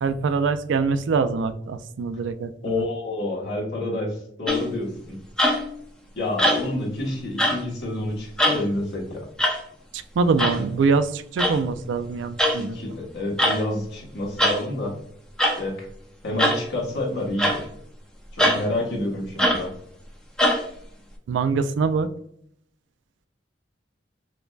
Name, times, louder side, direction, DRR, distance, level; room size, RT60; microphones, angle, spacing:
voice 1, 0.0-2.8 9.9-12.8 21.3-22.1, right 4 dB, 80° right, 12 dB, 0.3 m, -24 dB
voice 2, 2.6-5.2 6.2-9.2 12.7-14.9 15.6-15.9 16.2-17.6 18.3-19.7, left 2 dB, 65° left, -3 dB, 1.2 m, -28 dB
sound 1, 4.5-4.8 5.4-5.8 6.4-6.8 7.4-7.6 8.4-8.7 9.4-9.6 10.4-10.6 11.4-11.6 12.4-12.6 13.4-13.6 14.4-14.6 15.4-15.6 16.4-16.6 17.4-17.6 18.4-18.6 19.4-19.6 20.4-20.6, equal, 5° left, 0.4 m, -21 dB
4.7 x 2.2 x 2.3 m, 0.70 s
head